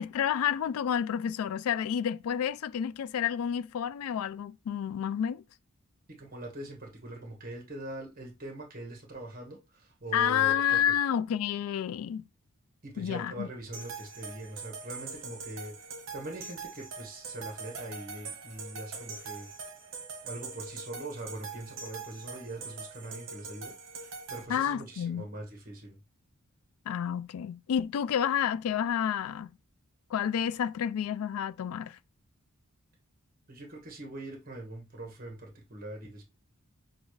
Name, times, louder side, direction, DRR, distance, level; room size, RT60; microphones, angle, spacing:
voice 1, 0.0-5.4 10.1-12.2 13.0-13.5 24.5-25.2 26.9-29.5 30.1-32.0, left 9 dB, 70° left, 0.3 m, -29 dB
voice 2, 6.2-10.9 12.8-15.8 16.1-19.5 20.2-26.0 33.5-36.2, right 1 dB, 40° right, 1.4 m, -42 dB
sound 1, 13.7-24.4, right 5 dB, 60° right, 1.2 m, -43 dB
6.3 x 2.4 x 3.2 m
head